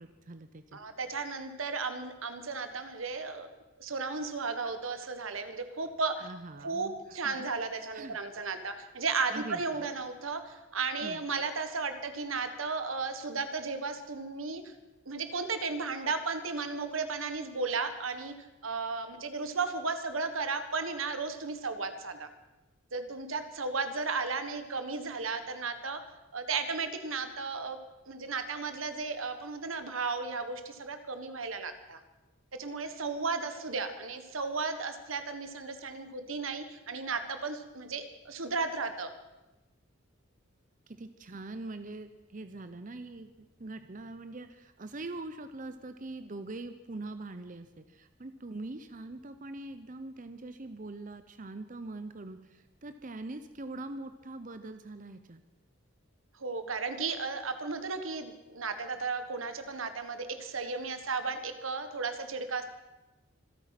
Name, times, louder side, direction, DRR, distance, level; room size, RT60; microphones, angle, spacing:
voice 1, 0.0-0.8 6.2-7.4 7.9-8.2 9.3-9.9 11.0-11.2 40.9-55.4, right 2 dB, 40° right, 9 dB, 0.8 m, -43 dB
voice 2, 0.7-3.5 3.8-6.3 6.6-14.7 15.0-18.3 18.6-22.3 22.9-26.0 26.3-27.8 28.1-32.0 32.6-39.1 56.4-62.6, right 4 dB, 85° right, 9 dB, 1.5 m, -34 dB
26.0 x 8.7 x 5.9 m, 1.1 s
head